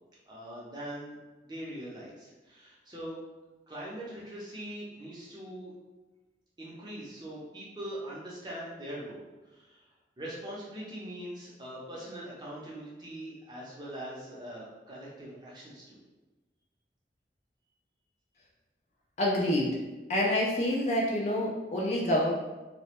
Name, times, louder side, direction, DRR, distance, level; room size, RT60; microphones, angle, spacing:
voice 1, 0.3-1.1 1.4-3.2 3.7-5.7 6.6-9.8 10.2-16.0, right 1 dB, 25° right, -6 dB, 0.6 m, -42 dB
voice 2, 19.2-19.8 20.1-22.3, left 1 dB, 40° left, -2 dB, 0.3 m, -27 dB
2.2 x 2.0 x 2.8 m, 1.2 s
head